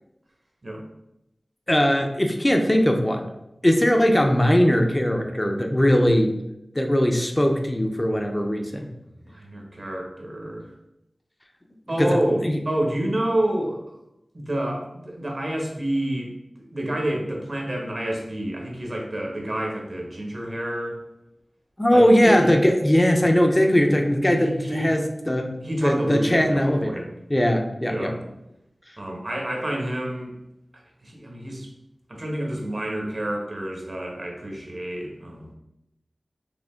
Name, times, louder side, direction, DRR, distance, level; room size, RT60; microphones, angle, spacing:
voice 1, 1.7-3.3 3.6-6.3 6.8-8.9 12.0-12.2 12.4-12.6 21.8-25.6 25.8-28.2, equal, 20° left, 3 dB, 0.6 m, -20 dB
voice 2, 9.2-10.6 11.9-14.0 14.3-16.3 16.7-21.0 21.9-22.5 24.2-25.0 25.6-27.1 27.9-28.2 29.0-30.3 30.7-31.7 32.1-35.5, right 1 dB, 55° right, 0 dB, 1.2 m, -28 dB
5.0 x 2.9 x 3.7 m, 0.87 s
wide cardioid pair, 60°, 0 cm